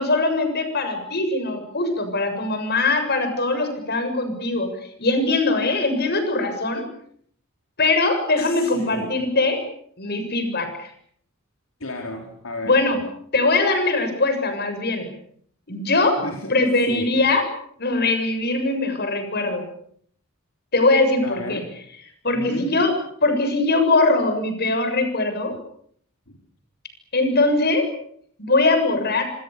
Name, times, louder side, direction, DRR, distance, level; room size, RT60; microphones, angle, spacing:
voice 1, 0.0-4.7 5.0-6.8 7.8-9.6 10.0-10.9 12.6-13.0 13.3-15.1 15.7-16.2 16.5-17.4 17.8-19.7 20.7-21.6 22.2-22.9 23.2-25.5 27.1-27.9 28.4-29.2, left 2 dB, 50° left, 8 dB, 7.3 m, -21 dB
voice 2, 8.4-9.2 11.8-12.8 16.2-16.5 16.9-17.1 21.2-21.7 22.3-22.7 26.3-26.4, left 1 dB, 75° left, 2 dB, 4.4 m, -33 dB
27.0 x 26.0 x 7.0 m, 0.64 s
head